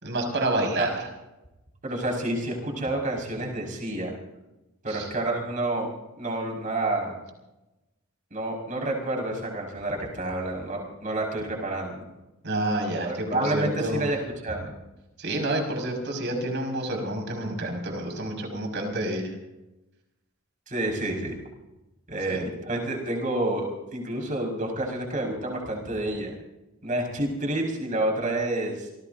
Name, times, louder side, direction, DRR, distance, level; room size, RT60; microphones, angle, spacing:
voice 1, 0.0-1.1 4.9-5.1 12.4-14.0 15.2-19.3 22.3-22.5, right 1 dB, 50° right, 2 dB, 5.6 m, -29 dB
voice 2, 1.8-4.2 4.8-5.9 6.2-7.2 8.3-12.0 13.0-14.2 14.4-14.7 20.7-21.4 22.1-23.7 23.9-26.3 26.8-28.9, right 1 dB, 35° right, 0 dB, 5.3 m, -29 dB
28.0 x 19.0 x 2.7 m, 0.98 s
head